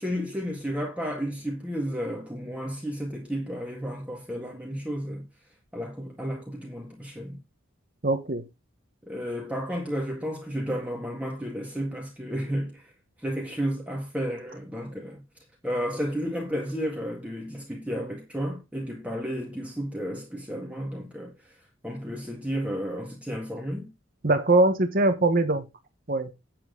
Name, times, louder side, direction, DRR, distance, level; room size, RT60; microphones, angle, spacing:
voice 1, 0.0-5.3 5.7-7.4 9.0-12.9 13.2-15.2 15.6-21.3 21.8-23.9, equal, 5° right, 1.8 m, -32 dB
voice 2, 8.0-8.4 24.2-25.7 26.1-26.3, right 2 dB, 45° right, 1.2 m, -22 dB
9.0 x 7.5 x 3.8 m
head